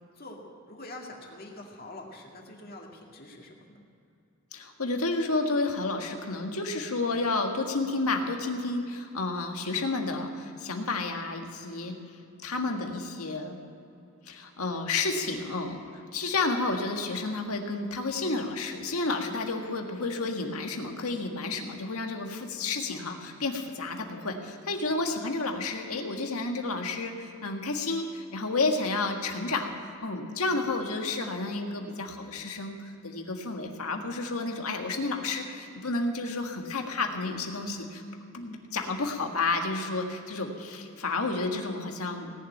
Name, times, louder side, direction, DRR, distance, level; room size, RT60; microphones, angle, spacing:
voice 1, 0.2-3.6, left 1 dB, 45° left, 0 dB, 2.1 m, -45 dB
voice 2, 4.5-11.9 12.4-13.6 14.2-38.0 38.3-42.3, left 3 dB, 85° left, 3 dB, 1.7 m, -31 dB
18.5 x 7.2 x 9.1 m, 2.6 s
head